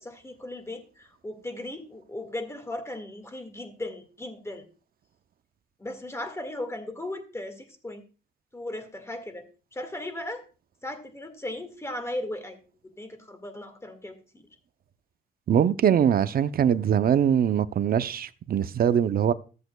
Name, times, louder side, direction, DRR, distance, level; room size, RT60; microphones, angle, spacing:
voice 1, 0.0-4.6 5.8-8.0 8.5-10.4 10.8-12.6 12.8-14.5, left 1 dB, 15° left, 1.8 m, -37 dB
voice 2, 15.5-19.3, right 9 dB, 50° right, 0.6 m, -22 dB
14.0 x 8.1 x 2.3 m
cardioid pair, 90°, 20 cm